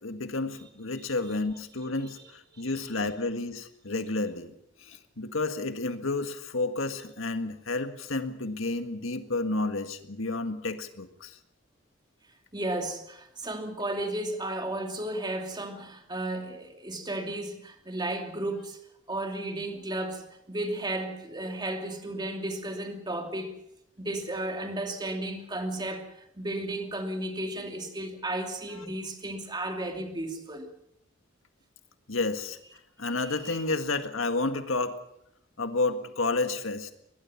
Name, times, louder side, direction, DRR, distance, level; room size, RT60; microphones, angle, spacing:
voice 1, 0.0-4.5 4.8-11.4 32.1-32.6 33.0-35.0 35.6-36.9, left 3 dB, 80° left, 1.8 m, -31 dB
voice 2, 12.5-18.8 19.1-23.6 24.0-30.7 33.2-33.6, right 1 dB, 20° right, 2.7 m, -34 dB
22.5 x 20.0 x 5.9 m
head